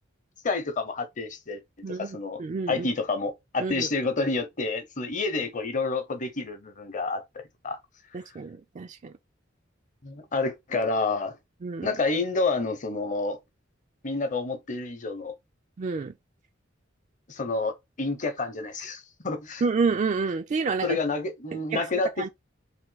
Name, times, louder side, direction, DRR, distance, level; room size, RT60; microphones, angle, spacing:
voice 1, 0.4-2.4 2.7-7.8 10.0-11.4 11.8-13.4 14.0-15.3 17.3-19.6 20.8-22.3, left 3 dB, 40° left, 0.8 m, -29 dB
voice 2, 1.8-2.9 3.6-3.9 8.1-9.1 11.6-11.9 15.8-16.1 19.6-21.0 21.7-21.8 22.2-22.3, right 4 dB, 40° right, 0.3 m, -29 dB
3.5 x 2.6 x 3.9 m
head